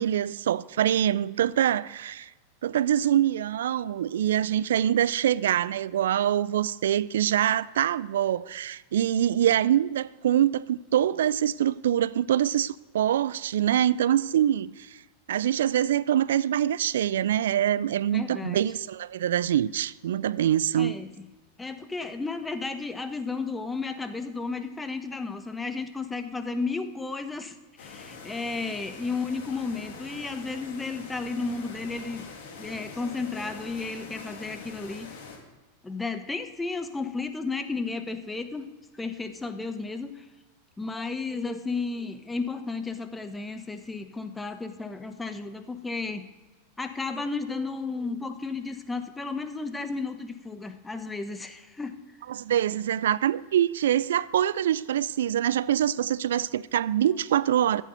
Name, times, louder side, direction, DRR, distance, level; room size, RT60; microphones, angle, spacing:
voice 1, 0.0-2.3 2.6-15.0 15.3-21.0 52.3-57.8, right 11 dB, 70° right, 0.4 m, -24 dB
voice 2, 18.1-18.6 20.7-21.1 21.6-32.3 32.6-35.2 35.8-40.3 40.8-46.3 46.8-51.9, left 4 dB, 10° left, 1.1 m, -33 dB
sound 1, 27.8-35.4, left 5 dB, 65° left, 2.7 m, -44 dB
13.5 x 8.5 x 5.1 m
hypercardioid pair, 95°, 0 cm